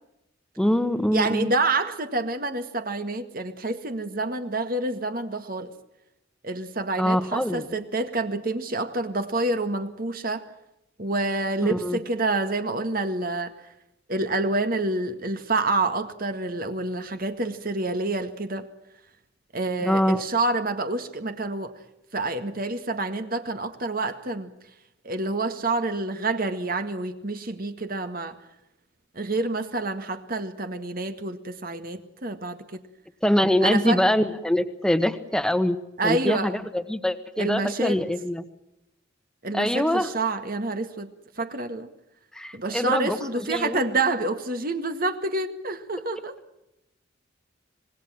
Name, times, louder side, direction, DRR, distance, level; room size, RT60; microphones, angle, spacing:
voice 1, 0.6-1.5 7.0-7.6 11.7-12.0 19.8-20.2 33.2-35.8 36.0-38.4 39.5-40.1 42.3-43.8, left 1 dB, 5° left, 10 dB, 1.5 m, -24 dB
voice 2, 1.1-5.7 6.4-10.4 11.0-13.5 14.1-18.7 19.5-21.7 22.1-24.5 25.0-28.4 29.1-32.8 33.6-34.0 36.0-36.6 37.4-38.0 39.4-41.1 41.4-41.9 42.5-46.4, right 2 dB, 45° right, 8 dB, 1.8 m, -28 dB
26.0 x 21.0 x 7.5 m, 0.88 s
head